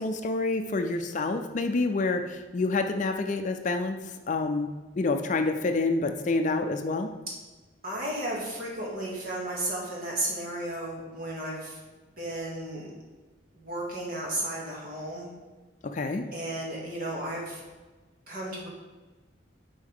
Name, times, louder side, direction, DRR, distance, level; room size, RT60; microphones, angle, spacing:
voice 1, 0.0-4.0 4.3-4.7 5.0-7.1 15.8-16.2, left 3 dB, 40° left, 6 dB, 0.4 m, -27 dB
voice 2, 7.8-11.8 12.2-12.9 13.5-15.3 16.3-17.6 18.3-18.7, right 1 dB, 50° right, -4 dB, 2.2 m, -34 dB
9.8 x 4.7 x 3.5 m, 1.2 s
head